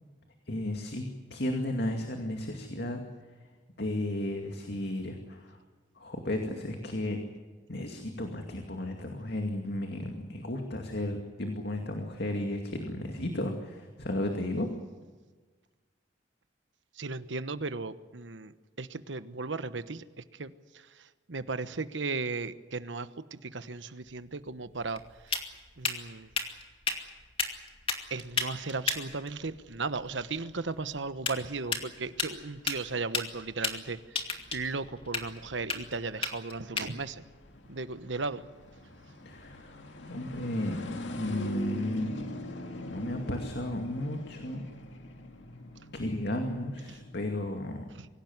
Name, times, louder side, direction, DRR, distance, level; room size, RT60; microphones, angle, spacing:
voice 1, 0.5-3.0 3.8-5.6 6.0-7.2 7.7-14.7 39.3-39.7 40.1-42.1 42.8-44.6 45.9-47.9, left 1 dB, 65° left, 3 dB, 2.4 m, -34 dB
voice 2, 17.0-20.0 20.3-25.3 25.8-26.3 28.1-34.2 34.5-37.2 37.7-38.4 46.9-47.0 47.9-48.1, right 3 dB, 90° right, 12 dB, 1.1 m, -36 dB
sound 1, 24.0-38.7, left 4 dB, 30° left, 2.4 m, -37 dB
sound 2, 28.2-47.2, left 1 dB, 85° left, 2.2 m, -44 dB
24.5 x 17.0 x 9.6 m, 1.4 s
head